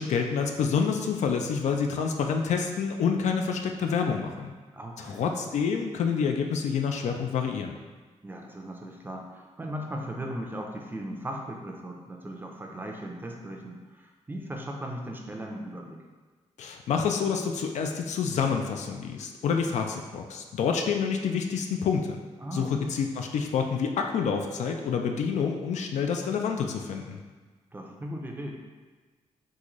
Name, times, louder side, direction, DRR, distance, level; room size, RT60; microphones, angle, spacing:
voice 1, 0.0-4.5 5.0-7.7 16.6-22.2 22.5-27.2, left 6 dB, 75° left, 4 dB, 0.4 m, -28 dB
voice 2, 4.7-5.4 8.2-16.0 22.4-22.9 27.7-28.5, right 1 dB, 15° right, 1 dB, 0.4 m, -38 dB
3.7 x 2.5 x 3.0 m, 1.4 s
cardioid pair, 110°, 12 cm